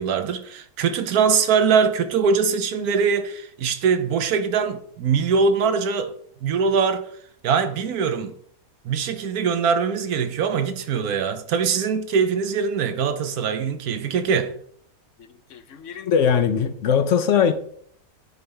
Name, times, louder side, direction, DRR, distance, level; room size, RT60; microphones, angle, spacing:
voice 1, 0.0-6.1 6.4-7.1 7.4-8.3 8.8-14.5, right 6 dB, 75° right, 1.2 m, -22 dB
voice 2, 15.5-17.5, left 7 dB, 60° left, 0.9 m, -20 dB
9.7 x 3.4 x 5.5 m
omnidirectional pair, 1.6 m